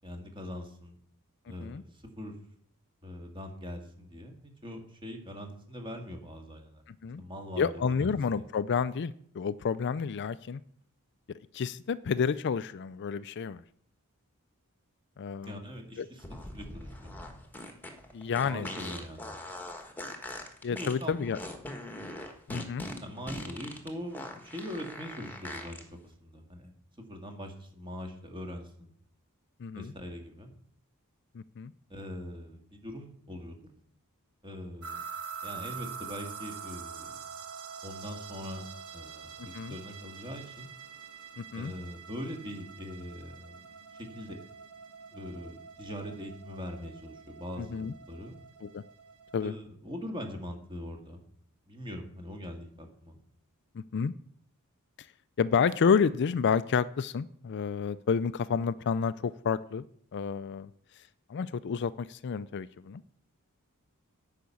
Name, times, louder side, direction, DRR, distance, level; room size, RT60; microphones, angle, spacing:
voice 1, 0.0-1.0 1.5-1.9 2.2-2.4 3.0-6.8 7.2-8.1 8.3-8.5 15.4-16.2 16.5-17.3 18.4-19.4 20.7-21.2 22.6-22.7 23.0-25.8 26.2-26.7 27.1-28.9 29.7-30.5 31.9-33.6 34.4-35.0 35.4-37.2 37.8-40.7 41.6-43.7 43.9-44.4 45.1-48.4 49.4-51.2 51.7-53.2, equal, 20° right, 4 dB, 2.0 m, -42 dB
voice 2, 7.6-10.6 11.5-13.6 15.2-15.6 16.0-16.1 18.1-18.7 20.6-21.4 22.5-22.8 29.6-29.9 31.3-31.7 39.4-39.7 41.4-41.7 47.7-47.9 48.6-48.8 49.3-49.5 53.8-54.1 55.4-59.9 60.1-60.7 61.3-63.0, left 6 dB, 50° left, 15 dB, 0.4 m, -30 dB
sound 1, 16.2-25.8, left 1 dB, 10° left, 1.4 m, -41 dB
sound 2, 34.8-49.5, right 6 dB, 75° right, 1.7 m, -45 dB
10.0 x 5.8 x 8.4 m, 0.64 s
head